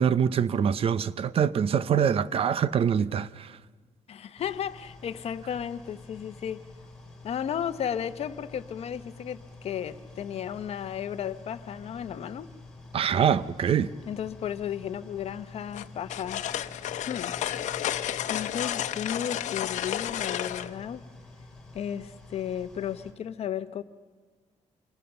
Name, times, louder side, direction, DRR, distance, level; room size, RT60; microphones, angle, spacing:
voice 1, 0.0-3.5 12.9-13.9, right 8 dB, 50° right, 0.7 m, -24 dB
voice 2, 4.1-6.6 7.2-12.5 14.1-16.5 17.1-17.3 18.3-21.0 21.7-23.8, left 9 dB, 55° left, 0.9 m, -34 dB
sound 1, 4.4-23.1, left 2 dB, 5° left, 3.8 m, -48 dB
sound 2, 15.7-20.7, left 11 dB, 85° left, 1.0 m, -32 dB
27.0 x 24.5 x 7.0 m
cardioid pair, 145°, 12 cm